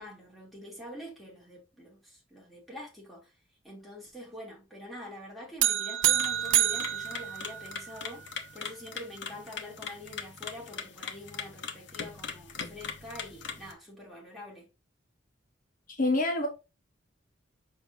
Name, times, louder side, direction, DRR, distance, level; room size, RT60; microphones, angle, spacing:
voice 1, 0.0-3.3 3.6-14.7, left 1 dB, ahead, 3.1 m, -45 dB
sound 1, 5.6-8.1, right 12 dB, 75° right, 0.5 m, -27 dB
sound 2, 6.0-13.7, left 6 dB, 65° left, 1.0 m, -41 dB
voice 2, 15.9-16.5, left 2 dB, 45° left, 1.1 m, -26 dB
6.6 x 5.4 x 2.8 m
head